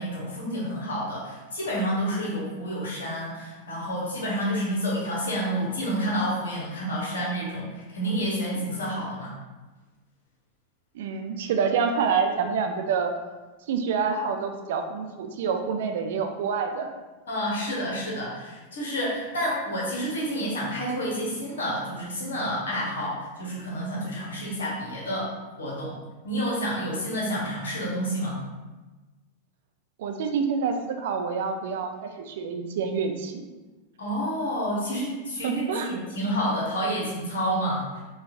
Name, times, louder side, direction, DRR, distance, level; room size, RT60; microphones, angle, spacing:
voice 1, 0.0-9.3 17.3-25.3 25.6-26.0 26.2-28.4 34.0-38.0, equal, 60° left, -5 dB, 1.0 m, -29 dB
voice 2, 10.9-13.1 13.7-16.9 30.0-31.9 32.2-33.5 35.4-35.9, right 6 dB, 55° right, 5 dB, 0.4 m, -27 dB
4.2 x 2.4 x 2.6 m, 1.2 s
figure-of-eight pair, 90°, 0 cm